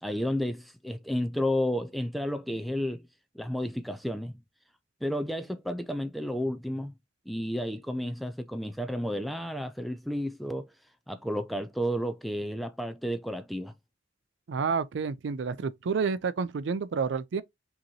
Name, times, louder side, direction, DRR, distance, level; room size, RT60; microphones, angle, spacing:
voice 1, 0.0-3.1 3.3-4.4 5.0-6.9 7.3-10.7 11.1-13.7, equal, ahead, 0.3 m, -32 dB
voice 2, 14.5-17.4, right 5 dB, 70° right, 0.4 m, -29 dB
5.1 x 2.9 x 2.7 m
head